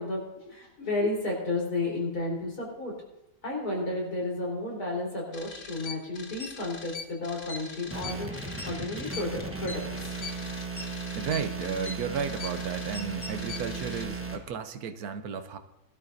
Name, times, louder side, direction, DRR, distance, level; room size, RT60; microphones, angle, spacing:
voice 1, 0.0-2.9 3.4-8.4 8.7-10.2, left 2 dB, 80° left, -3 dB, 4.6 m, -32 dB
sound 1, 5.3-14.0, left 4 dB, 45° left, 1.3 m, -41 dB
sound 2, 7.9-14.4, right 3 dB, 10° right, 1.0 m, -36 dB
voice 2, 11.2-15.6, right 7 dB, 75° right, 9 dB, 1.3 m, -33 dB
21.0 x 12.5 x 2.7 m, 0.90 s
omnidirectional pair, 1.6 m